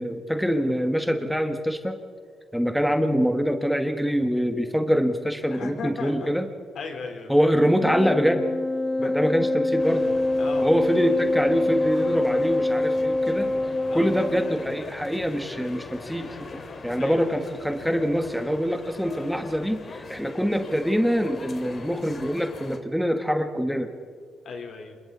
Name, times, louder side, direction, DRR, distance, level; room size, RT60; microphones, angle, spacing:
voice 1, 0.0-2.0 2.5-6.4 7.3-8.5 9.0-10.1 10.6-13.5 13.9-23.9, equal, ahead, 6 dB, 1.5 m, -24 dB
voice 2, 5.5-6.3 6.7-7.3 9.0-9.3 10.4-10.7 13.9-14.4 16.6-17.5 24.4-25.0, left 4 dB, 60° left, 3 dB, 4.0 m, -37 dB
Wind instrument woodwind instrument, 7.8-14.8, left 2 dB, 20° left, 0.7 m, -25 dB
sound 1, 9.8-22.8, left 3 dB, 40° left, 2.5 m, -41 dB
27.5 x 23.0 x 4.2 m, 2.2 s
cardioid pair, 90°, 0 cm